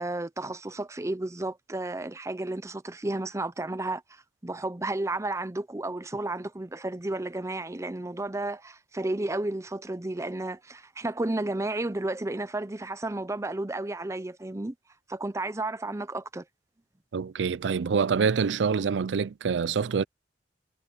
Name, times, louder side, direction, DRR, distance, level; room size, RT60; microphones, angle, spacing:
voice 1, 0.0-14.7 15.1-16.4, right 2 dB, 15° right, 0.6 m, -32 dB
voice 2, 17.1-20.0, right 6 dB, 90° right, 0.4 m, -26 dB
head